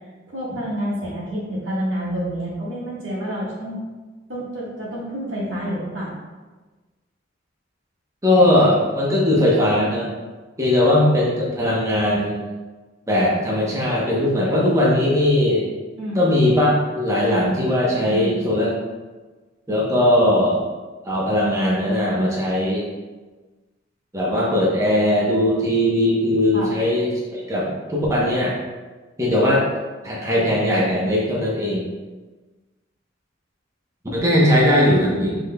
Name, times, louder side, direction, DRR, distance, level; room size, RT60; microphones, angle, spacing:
voice 1, 0.3-3.8 4.3-6.1 16.0-16.3 18.0-18.4 26.5-26.8, equal, 90° right, -6 dB, 1.5 m, -28 dB
voice 2, 8.2-10.1 10.6-12.4 13.1-15.7 16.1-18.7 19.7-20.6 21.0-22.9 24.1-28.5 29.2-29.6 30.0-31.9 34.1-35.4, left 1 dB, 15° right, -5 dB, 0.8 m, -19 dB
5.9 x 3.4 x 2.2 m, 1.3 s
head